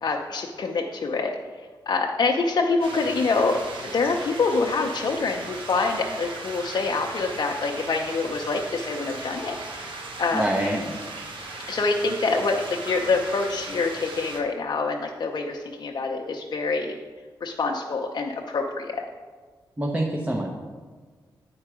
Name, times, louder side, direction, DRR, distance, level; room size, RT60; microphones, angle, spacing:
voice 1, 0.0-1.3 1.9-3.6 3.9-10.4 11.7-17.0 17.4-19.0, left 4 dB, 60° left, 1 dB, 0.6 m, -26 dB
sound 1, 2.8-14.4, right 2 dB, 80° right, 1.1 m, -37 dB
voice 2, 10.3-10.9 19.8-20.5, right 1 dB, 15° right, -1 dB, 0.9 m, -25 dB
8.7 x 4.5 x 4.9 m, 1.5 s
cardioid pair, 65°, 8 cm